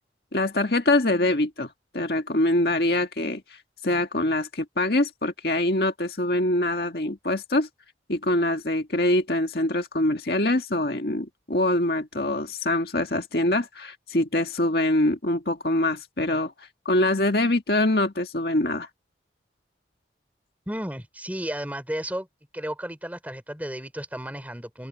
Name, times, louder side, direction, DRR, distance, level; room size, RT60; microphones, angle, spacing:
voice 1, 0.3-1.7 1.9-3.4 3.8-7.7 8.1-16.5 16.9-18.9, left 1 dB, 55° left, 1.9 m, -24 dB
voice 2, 20.7-22.3 22.5-24.9, equal, 10° right, 3.9 m, -33 dB
open air
head